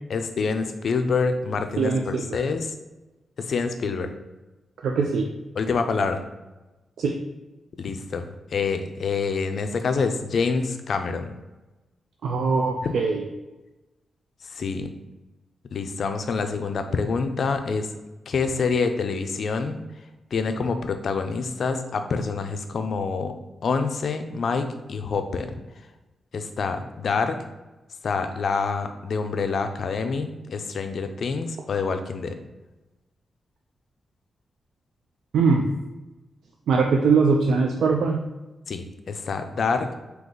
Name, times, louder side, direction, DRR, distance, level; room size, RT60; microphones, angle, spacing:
voice 1, 0.1-2.7 3.4-4.1 5.6-6.2 7.8-11.3 12.8-12.9 14.4-14.9 15.7-17.9 18.3-19.8 20.3-23.3 23.6-25.6 26.3-27.4 28.0-32.3 38.7-39.9, left 4 dB, 55° left, 7 dB, 0.4 m, -26 dB
voice 2, 1.8-2.4 4.8-5.3 7.0-7.2 12.2-13.3 35.3-35.6 36.7-38.2, right 4 dB, 85° right, 1 dB, 0.4 m, -21 dB
3.7 x 2.8 x 3.9 m, 1.1 s
wide cardioid pair, 170°, 0 cm